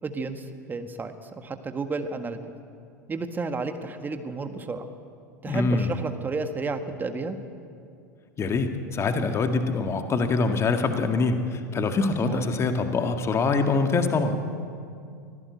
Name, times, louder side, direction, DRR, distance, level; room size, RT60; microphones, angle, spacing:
voice 1, 0.0-2.4 3.1-4.8 5.4-7.4 12.3-12.5, right 3 dB, 20° right, 7 dB, 1.7 m, -32 dB
voice 2, 5.4-6.0 8.4-14.4, left 4 dB, 25° left, 6 dB, 1.9 m, -24 dB
24.0 x 17.0 x 8.4 m, 2.4 s
figure-of-eight pair, 80°, 10 cm